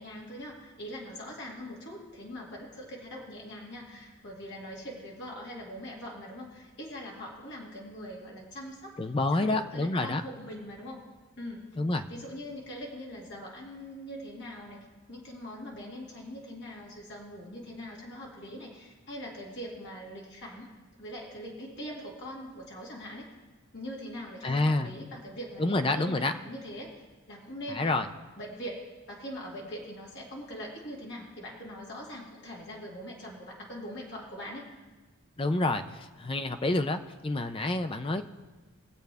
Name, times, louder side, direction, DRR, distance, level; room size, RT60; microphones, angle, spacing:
voice 1, 0.0-9.0 9.3-11.0 11.4-11.7 12.1-20.7 21.0-23.3 23.7-34.7, equal, 50° left, -3 dB, 2.3 m, -42 dB
voice 2, 9.0-10.2 11.8-12.0 24.4-24.9 25.6-26.3 27.7-28.1 35.4-38.2, left 2 dB, 25° left, 8 dB, 0.5 m, -28 dB
21.5 x 7.8 x 3.5 m, 1.3 s
head